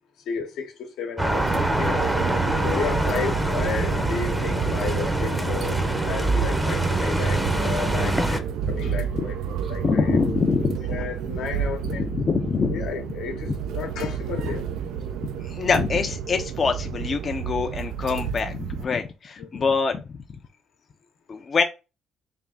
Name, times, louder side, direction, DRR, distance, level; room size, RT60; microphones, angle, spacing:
voice 1, 0.3-2.3 2.6-10.2 10.9-12.1 12.7-14.6 19.4-19.6, left 5 dB, 85° left, 1.0 m, -33 dB
sound 1, 1.2-8.4, right 1 dB, 5° right, 0.6 m, -25 dB
sound 2, 1.2-18.8, right 8 dB, 85° right, 0.3 m, -30 dB
voice 2, 9.6-11.1 11.8-12.8 14.5-14.6 15.2-20.4 21.3-21.6, left 5 dB, 45° left, 0.5 m, -25 dB
3.4 x 2.4 x 3.7 m
cardioid pair, 90°, 0 cm